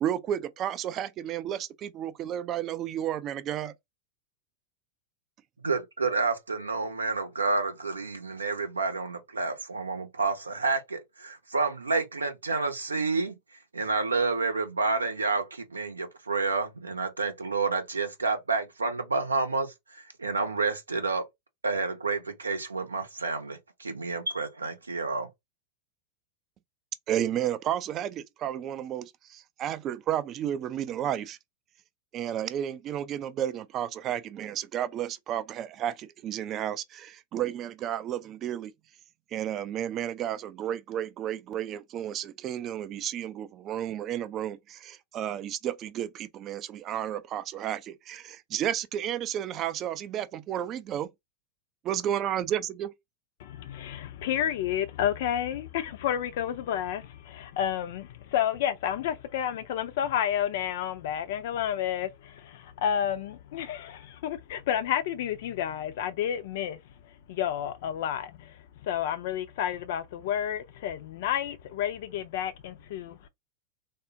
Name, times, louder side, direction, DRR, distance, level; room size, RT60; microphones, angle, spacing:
voice 1, 0.0-3.7 27.1-31.4 32.1-38.7 39.3-51.1 51.8-52.9, right 10 dB, 30° right, 0.4 m, -32 dB
voice 2, 5.6-13.3 13.7-21.3 21.6-25.3, right 4 dB, 75° right, 0.6 m, -29 dB
voice 3, 53.4-73.3, left 10 dB, 55° left, 0.5 m, -31 dB
3.5 x 2.1 x 2.6 m
figure-of-eight pair, 90°, 0 cm